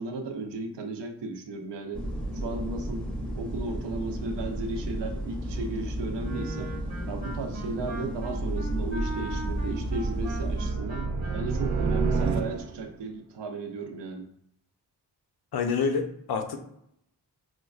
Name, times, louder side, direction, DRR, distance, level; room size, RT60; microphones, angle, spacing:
voice 1, 0.0-2.0 2.3-3.1 3.3-6.7 7.1-14.3, right 3 dB, 90° right, 4 dB, 0.6 m, -35 dB
sound 1, 1.9-10.7, right 1 dB, 5° left, 0.6 m, -33 dB
Wind instrument woodwind instrument, 6.2-12.6, right 1 dB, 25° right, 0.9 m, -40 dB
sound 2, 8.0-13.0, right 4 dB, 45° right, 0.4 m, -31 dB
voice 2, 15.5-16.6, left 5 dB, 65° left, 6 dB, 0.6 m, -27 dB
4.4 x 2.2 x 2.3 m, 0.75 s
cardioid pair, 75°, 41 cm